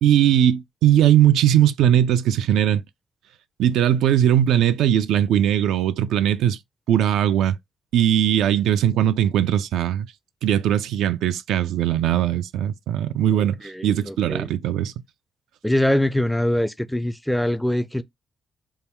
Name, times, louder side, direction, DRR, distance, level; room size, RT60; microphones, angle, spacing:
voice 1, 0.0-2.8 3.6-6.6 6.9-7.6 7.9-10.1 10.4-14.9, right 10 dB, 85° right, 0.3 m, -19 dB
voice 2, 13.6-14.5 15.6-18.0, left 1 dB, 5° left, 0.4 m, -23 dB
3.6 x 2.2 x 4.3 m
cardioid pair, 90°, 0 cm